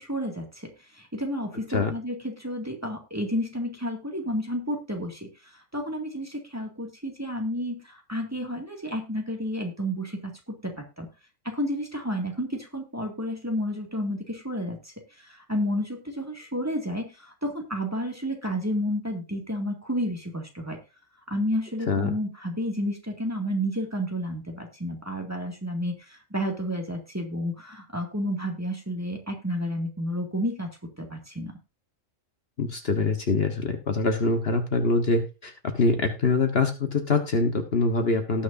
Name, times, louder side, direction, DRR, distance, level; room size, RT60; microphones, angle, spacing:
voice 1, 0.0-10.3 10.6-11.1 11.4-20.8 21.3-30.7 31.0-31.5, equal, 10° right, 1 dB, 2.1 m, -31 dB
voice 2, 32.6-38.4, left 3 dB, 50° left, 5 dB, 1.4 m, -24 dB
18.5 x 6.4 x 2.6 m, 0.29 s
omnidirectional pair, 1.4 m